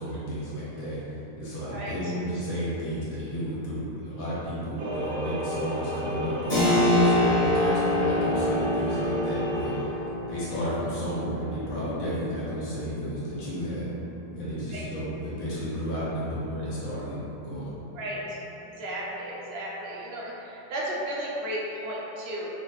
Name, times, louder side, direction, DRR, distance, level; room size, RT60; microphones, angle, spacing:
voice 1, 0.0-9.9 10.3-13.9 14.3-17.1 17.4-17.7, equal, 85° left, -10 dB, 1.4 m, -32 dB
sound 1, 4.8-9.9, equal, 85° right, 1.1 m, -31 dB
Keyboard (musical), 6.5-16.9, left 1 dB, 50° left, 1.1 m, -29 dB
voice 2, 18.8-22.5, right 1 dB, 65° right, -5 dB, 0.6 m, -34 dB
3.0 x 2.2 x 3.1 m, 3.0 s
omnidirectional pair, 1.4 m